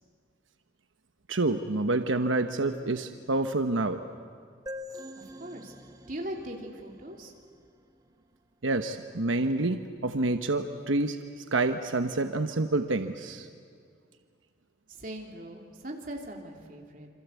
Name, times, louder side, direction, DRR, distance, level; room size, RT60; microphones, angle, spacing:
voice 1, 1.3-4.0 8.6-13.5, right 2 dB, 90° right, 8 dB, 1.1 m, -28 dB
sound 1, 4.7-8.2, left 1 dB, 20° right, 0.9 m, -45 dB
voice 2, 5.2-5.7 6.1-7.3 14.9-17.1, right 1 dB, 45° right, 1 dB, 3.3 m, -40 dB
28.0 x 25.5 x 8.3 m, 2.1 s
head